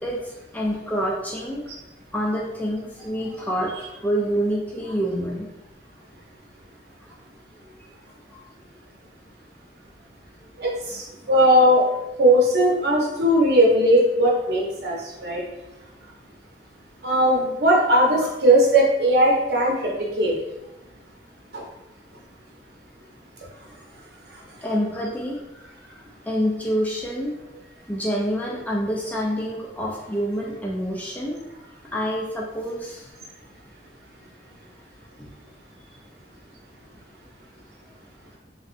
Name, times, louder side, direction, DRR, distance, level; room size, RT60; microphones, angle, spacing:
voice 1, 0.0-1.6 2.1-5.5 8.3-8.4 11.2-11.4 24.6-25.7 26.3-27.3 27.9-31.4 31.9-33.1 35.2-35.3, equal, 10° left, -3 dB, 0.3 m, -27 dB
voice 2, 10.6-11.9 12.2-15.0 15.2-15.4 17.0-19.9 20.2-20.3 21.5-21.6, right 1 dB, 65° right, -3 dB, 0.8 m, -18 dB
3.1 x 2.6 x 2.5 m, 0.97 s
head